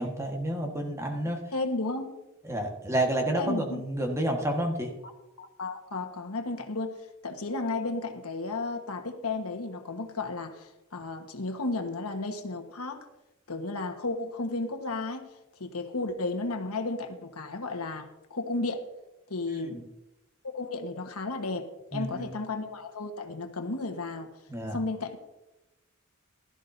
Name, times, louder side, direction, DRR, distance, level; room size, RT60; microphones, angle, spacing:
voice 1, 0.0-1.4 2.5-4.9 19.6-19.8 21.9-22.3 24.5-24.8, right 1 dB, 15° right, 2 dB, 1.4 m, -30 dB
voice 2, 1.5-2.1 3.4-3.8 5.4-6.9 7.2-13.0 13.5-15.3 15.6-18.8 19.3-19.8 20.4-24.3 24.7-25.2, left 3 dB, 80° left, 5 dB, 1.3 m, -33 dB
16.0 x 12.5 x 2.7 m, 0.97 s
head